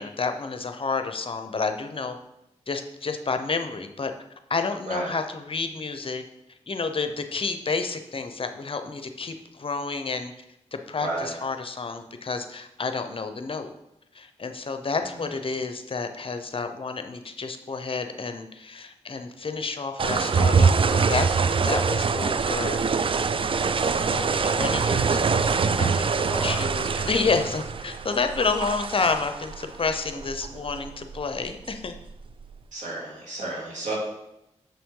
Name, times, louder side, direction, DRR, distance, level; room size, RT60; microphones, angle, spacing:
voice 1, 0.0-2.2 2.7-4.1 4.5-6.2 6.7-10.3 10.7-13.7 14.1-21.4 21.6-22.8 23.9-31.9, left 4 dB, 50° left, 7 dB, 0.7 m, -30 dB
voice 2, 11.0-11.4 15.1-15.3 23.7-24.1 26.3-26.6 26.9-27.1 32.7-33.9, right 2 dB, 85° right, -5 dB, 2.6 m, -33 dB
sound 1, 20.0-32.6, right 5 dB, 45° right, 0.4 m, -24 dB
7.0 x 5.7 x 3.7 m, 0.88 s
cardioid pair, 60°, 12 cm